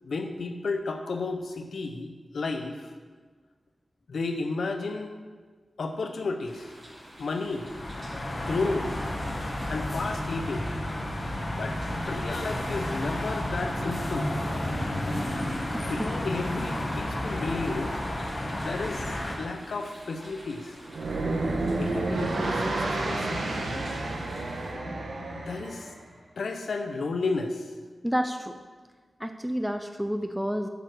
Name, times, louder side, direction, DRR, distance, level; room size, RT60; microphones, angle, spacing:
voice 1, 0.0-2.9 4.1-5.1 5.8-6.7 7.2-7.7 8.5-8.9 9.7-10.7 11.5-11.8 12.0-14.3 15.9-17.9 18.5-20.7 21.6-23.9 24.7-25.9 26.4-27.6, left 3 dB, 80° left, 5 dB, 0.9 m, -33 dB
sound 1, 6.4-24.7, equal, 40° right, 3.2 m, -48 dB
sound 2, 7.5-19.3, left 1 dB, 30° left, 1.7 m, -31 dB
voice 2, 15.7-16.1 28.0-28.5 29.2-30.7, equal, 5° right, 7 dB, 0.4 m, -30 dB
sound 3, 20.9-26.0, right 2 dB, 90° right, 1.3 m, -30 dB
8.0 x 7.2 x 6.2 m, 1.5 s
wide cardioid pair, 130°, 0 cm